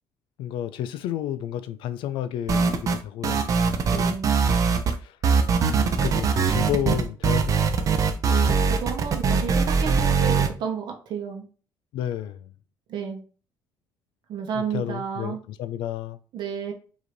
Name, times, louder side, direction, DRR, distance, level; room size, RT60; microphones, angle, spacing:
voice 1, 0.4-3.5 5.0-5.2 5.7-8.0 11.9-12.5 14.5-16.2, left 11 dB, 80° left, 0.4 m, -31 dB
sound 1, 2.5-3.0 3.2-5.0 5.2-10.5, right 5 dB, 40° right, 0.6 m, -21 dB
voice 2, 3.9-4.3 8.3-11.5 12.9-13.2 14.3-15.4 16.3-16.7, right 7 dB, 65° right, 1.0 m, -32 dB
4.9 x 2.7 x 3.1 m
cardioid pair, 125°, 8 cm